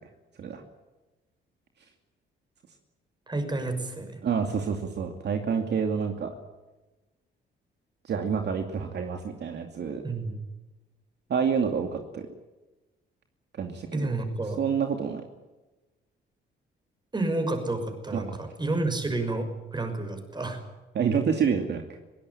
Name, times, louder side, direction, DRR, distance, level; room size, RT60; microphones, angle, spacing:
voice 1, 3.3-4.2 10.0-10.4 13.9-14.6 17.1-20.6, right 2 dB, 20° right, 7 dB, 6.1 m, -30 dB
voice 2, 4.2-6.3 8.0-10.0 11.3-12.3 13.5-14.1 14.6-15.2 18.1-18.4 20.9-21.8, right 6 dB, 60° right, 4 dB, 2.6 m, -28 dB
22.5 x 17.5 x 10.0 m, 1.1 s
cardioid pair, 90°, 20 cm